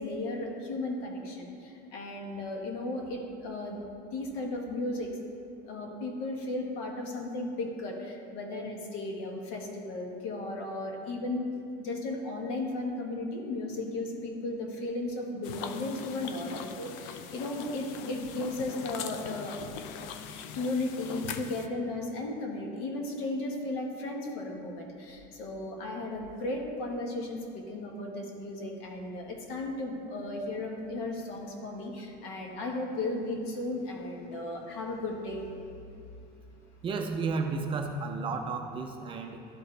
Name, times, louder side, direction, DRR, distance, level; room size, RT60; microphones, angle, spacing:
voice 1, 0.0-3.8 4.1-5.2 5.6-11.5 11.8-19.6 20.5-35.5, left 2 dB, 70° left, 1 dB, 1.4 m, -35 dB
sound 1, 15.4-21.7, left 7 dB, 85° left, 0.5 m, -41 dB
voice 2, 36.8-39.5, right 4 dB, 25° right, 3 dB, 0.4 m, -32 dB
12.5 x 4.7 x 3.3 m, 2.5 s
cardioid pair, 165°, 21 cm